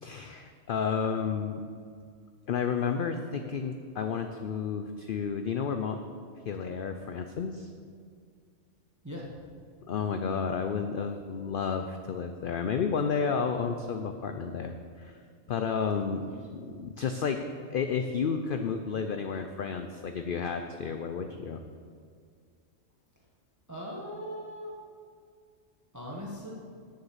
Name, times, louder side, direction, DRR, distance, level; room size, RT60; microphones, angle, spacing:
voice 1, 0.0-1.6 2.5-6.0 6.5-7.7 9.9-15.2 15.5-16.2 16.5-17.4 17.7-21.6, left 6 dB, 55° left, 6 dB, 0.6 m, -31 dB
voice 2, 23.7-24.7 25.9-26.5, equal, 15° right, -3 dB, 1.3 m, -39 dB
9.7 x 6.5 x 7.3 m, 2.2 s
omnidirectional pair, 1.3 m